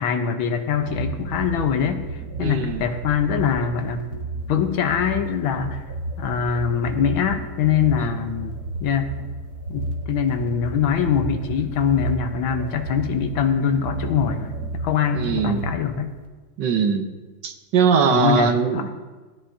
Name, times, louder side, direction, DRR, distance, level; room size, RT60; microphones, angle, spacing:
voice 1, 0.0-2.1 2.4-4.1 4.5-5.8 6.2-9.2 9.7-16.1 18.0-18.9, left 7 dB, 75° left, 7 dB, 1.6 m, -23 dB
sound 1, 0.6-16.3, right 2 dB, 45° right, 1.6 m, -32 dB
voice 2, 2.4-2.8 8.0-8.2 15.1-15.7 16.6-17.1 17.4-18.9, right 6 dB, 65° right, 7 dB, 1.3 m, -21 dB
16.5 x 13.5 x 2.6 m, 1.3 s
omnidirectional pair, 2.3 m